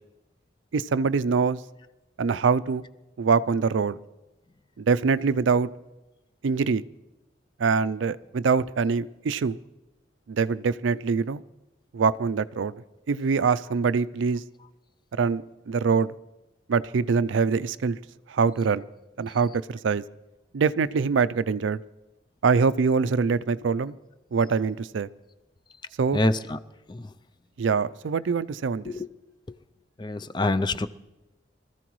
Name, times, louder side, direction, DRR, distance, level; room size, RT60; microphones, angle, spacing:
voice 1, 0.7-1.6 2.2-2.8 3.2-4.0 4.8-5.7 6.4-6.8 7.6-9.6 10.3-11.4 11.9-14.4 15.2-16.1 16.7-18.0 18.3-18.8 19.2-20.0 20.5-21.8 22.4-24.0 24.3-25.1 26.0-26.2 27.6-28.9, right 5 dB, 75° right, 18 dB, 0.4 m, -24 dB
voice 2, 26.1-26.6 26.9-27.1 28.8-29.1 29.5-29.6 30.0-30.9, left 2 dB, 25° left, 12 dB, 0.4 m, -26 dB
24.5 x 14.5 x 3.1 m, 1.0 s
head